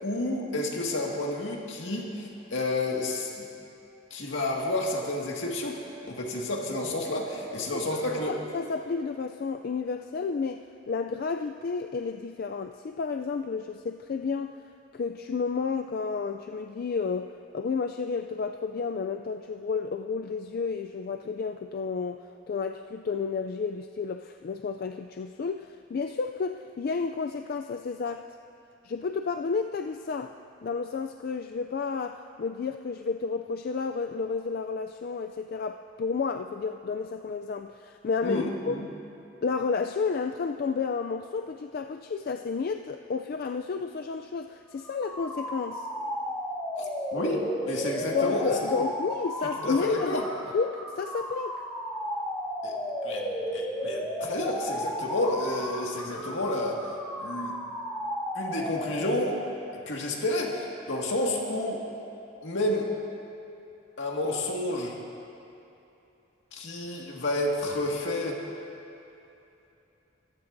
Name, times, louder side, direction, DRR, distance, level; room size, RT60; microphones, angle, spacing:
voice 1, 0.0-3.5 4.1-8.4 38.2-38.9 46.8-48.7 49.6-50.3 52.6-52.8 53.0-56.8 57.2-57.5 58.3-59.4 59.7-61.8 62.4-62.9 64.0-65.0 66.5-68.4, left 1 dB, 75° left, -1 dB, 1.9 m, -30 dB
voice 2, 7.5-14.5 14.9-17.3 17.5-28.2 28.8-30.3 30.6-38.8 39.4-45.9 48.1-50.2 50.5-51.6, left 5 dB, 50° left, 6 dB, 0.3 m, -31 dB
sound 1, 44.7-59.4, equal, 5° left, 1.6 m, -34 dB
24.0 x 14.5 x 2.6 m, 2.9 s
head